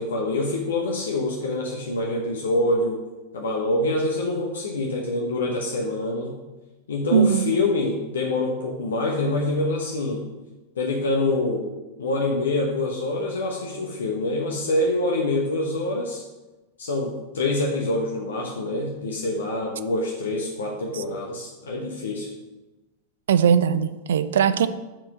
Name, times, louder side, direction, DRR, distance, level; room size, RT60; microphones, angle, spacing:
voice 1, 0.0-3.0 3.3-6.3 6.9-10.2 10.8-11.7 12.0-16.2 16.8-22.3, left 2 dB, 65° left, 0 dB, 0.9 m, -25 dB
voice 2, 7.1-7.5 20.9-21.0 23.3-24.7, right 8 dB, 60° right, 13 dB, 0.4 m, -20 dB
6.0 x 4.4 x 6.2 m, 1.1 s
figure-of-eight pair, 90°, 0 cm